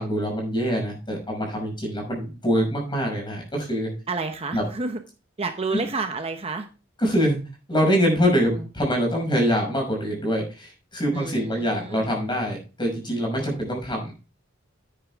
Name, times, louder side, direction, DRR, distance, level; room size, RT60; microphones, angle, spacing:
voice 1, 0.0-3.9 4.5-4.6 7.0-7.4 7.7-14.1, equal, 25° left, 1 dB, 5.8 m, -24 dB
voice 2, 4.1-5.0 5.4-6.7 11.1-12.2, right 3 dB, 30° right, 7 dB, 0.8 m, -30 dB
10.5 x 9.5 x 3.6 m, 0.33 s
head